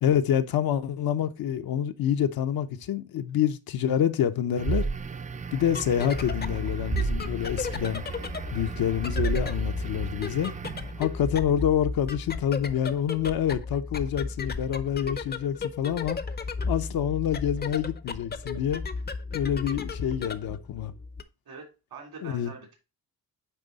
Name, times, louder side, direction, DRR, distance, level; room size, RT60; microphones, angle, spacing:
voice 1, 0.0-4.9 5.5-8.0 8.5-10.5 11.0-16.2 16.7-18.8 19.3-20.9 22.2-22.5, left 9 dB, 65° left, 0.7 m, -27 dB
sound 1, 4.6-11.3, right 5 dB, 20° right, 0.3 m, -33 dB
sound 2, 5.5-21.2, left 4 dB, 25° left, 0.6 m, -34 dB
voice 2, 21.4-22.8, right 5 dB, 75° right, 3.2 m, -44 dB
9.2 x 3.3 x 3.9 m
cardioid pair, 115°, 38 cm